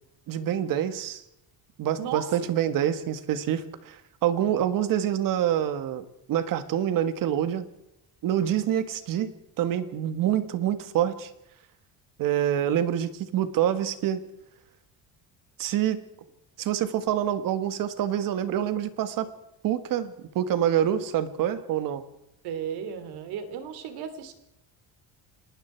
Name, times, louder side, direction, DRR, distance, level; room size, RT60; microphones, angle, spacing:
voice 1, 0.3-1.2 1.8-7.6 8.2-9.3 9.6-11.3 12.2-14.2 15.6-16.0 16.6-19.3 19.6-22.0, right 10 dB, 60° right, 11 dB, 1.7 m, -26 dB
voice 2, 2.0-2.5 22.4-24.3, right 8 dB, 90° right, 9 dB, 3.3 m, -35 dB
30.0 x 19.5 x 4.6 m, 0.84 s
cardioid pair, 170°, 37 cm